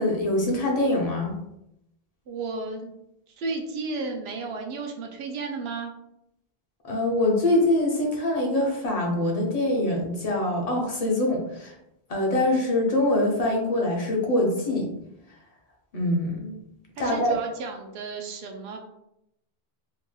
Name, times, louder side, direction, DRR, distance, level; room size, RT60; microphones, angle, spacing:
voice 1, 0.0-1.4 6.8-11.7 12.1-14.9 15.9-16.6 17.0-17.4, left 1 dB, 45° left, -1 dB, 0.7 m, -24 dB
voice 2, 2.3-2.9 3.3-5.9 17.0-18.8, right 3 dB, 85° right, 3 dB, 0.8 m, -33 dB
3.0 x 2.8 x 2.2 m, 0.82 s
omnidirectional pair, 1.0 m